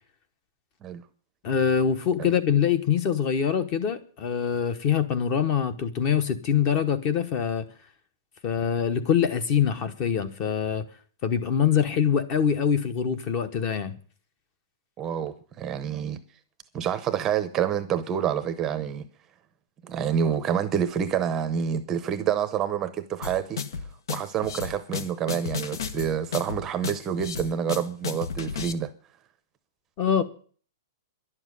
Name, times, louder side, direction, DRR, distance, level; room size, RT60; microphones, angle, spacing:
voice 1, 1.4-7.7 8.4-10.8 11.2-14.0 30.0-30.2, left 8 dB, 25° left, 1.0 m, -24 dB
voice 2, 15.0-16.2 16.7-19.0 19.8-23.6 24.1-28.9, right 8 dB, 15° right, 0.7 m, -28 dB
sound 1, 23.2-28.7, left 6 dB, 70° left, 1.1 m, -33 dB
11.0 x 7.2 x 9.7 m
hypercardioid pair, 170°, 2 cm